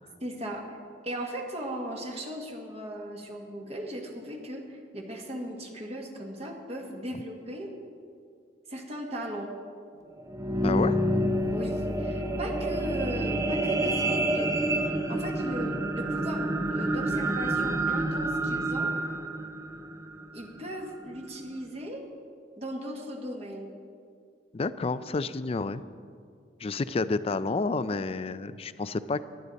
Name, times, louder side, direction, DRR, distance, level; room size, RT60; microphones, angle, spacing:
voice 1, 0.2-0.8 1.0-7.7 8.7-9.5 11.5-18.9 20.3-22.0 22.6-23.7, equal, 35° right, 1 dB, 1.6 m, -37 dB
sound 1, 10.1-20.6 21.2-21.3, right 1 dB, 20° right, 0.7 m, -28 dB
voice 2, 10.6-11.0 24.5-25.8 26.6-29.2, left 3 dB, 35° left, 14 dB, 0.4 m, -30 dB
18.0 x 11.5 x 4.1 m, 2.2 s
head